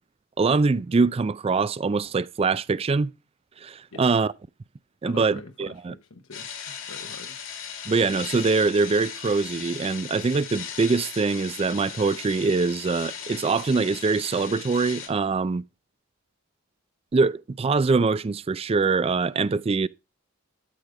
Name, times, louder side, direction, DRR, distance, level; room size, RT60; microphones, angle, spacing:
voice 1, 0.4-3.1 3.6-4.3 5.0-5.9 7.9-15.6 17.1-19.9, right 4 dB, 30° right, 0.3 m, -23 dB
voice 2, 5.0-6.5 6.9-7.4, left 3 dB, 85° left, 1.0 m, -44 dB
sound 1, 6.3-15.1, left 7 dB, 70° left, 2.5 m, -38 dB
12.5 x 5.0 x 3.8 m
head